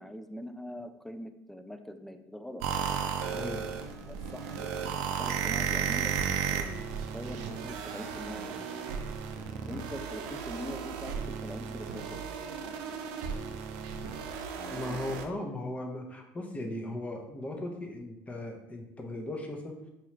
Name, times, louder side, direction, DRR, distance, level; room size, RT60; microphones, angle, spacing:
voice 1, 0.0-2.6 4.0-6.2 6.5-8.6 9.7-12.2 13.4-13.6 14.6-15.2 16.6-16.8, left 1 dB, 5° left, 8 dB, 0.3 m, -43 dB
sound 1, 2.6-15.2, right 7 dB, 85° right, 0.4 m, -34 dB
voice 2, 3.3-3.7 14.7-19.8, left 1 dB, 20° left, 3 dB, 0.7 m, -37 dB
4.3 x 2.3 x 3.1 m, 0.89 s
supercardioid pair, 95°, 7 cm